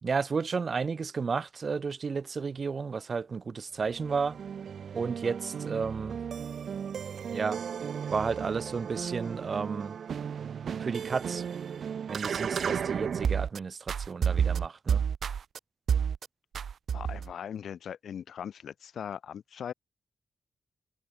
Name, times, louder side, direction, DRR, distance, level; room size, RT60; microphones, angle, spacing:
voice 1, 0.0-4.4 4.9-6.2 7.3-7.6 8.1-10.0 10.8-11.5 12.1-15.0, right 5 dB, 50° right, 2.3 m, -32 dB
sound 1, 3.8-13.6 13.9-15.6 15.9-16.3 16.5-17.3, right 7 dB, 75° right, 0.9 m, -32 dB
voice 2, 16.9-19.7, left 8 dB, 90° left, 3.3 m, -39 dB
wide cardioid pair, 105°, 0 cm